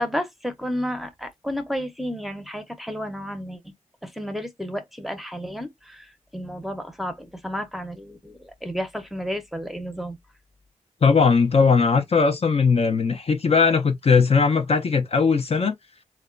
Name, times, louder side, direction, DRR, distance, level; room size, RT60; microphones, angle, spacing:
voice 1, 0.0-3.7 4.0-10.2, equal, ahead, 0.7 m, -32 dB
voice 2, 11.0-15.7, left 5 dB, 45° left, 0.5 m, -19 dB
2.8 x 2.2 x 2.4 m
wide cardioid pair, 75°, 14 cm